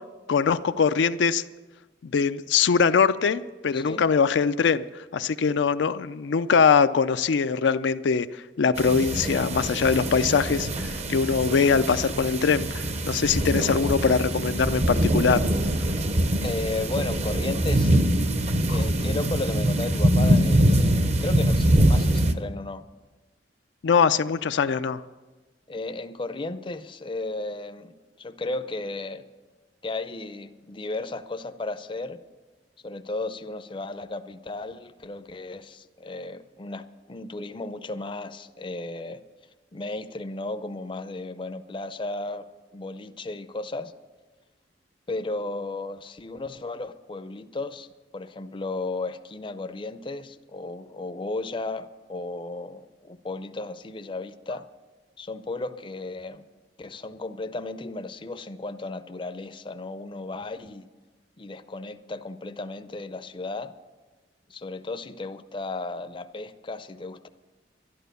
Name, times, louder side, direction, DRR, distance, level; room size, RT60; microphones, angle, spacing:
voice 1, 0.3-1.4 2.0-4.8 5.1-15.4 18.7-18.8 23.8-25.0, left 5 dB, 85° left, 11 dB, 0.4 m, -22 dB
voice 2, 3.7-4.0 16.4-17.9 18.7-22.8 25.7-29.3 29.8-32.2 32.8-39.2 39.7-43.9 45.1-47.9 48.1-54.6 55.2-56.4 56.8-60.9 61.4-63.7 64.5-67.3, left 2 dB, 30° left, 10 dB, 0.5 m, -34 dB
sound 1, 8.8-22.3, right 1 dB, 40° right, 0.7 m, -23 dB
11.5 x 11.5 x 6.7 m, 1.2 s
head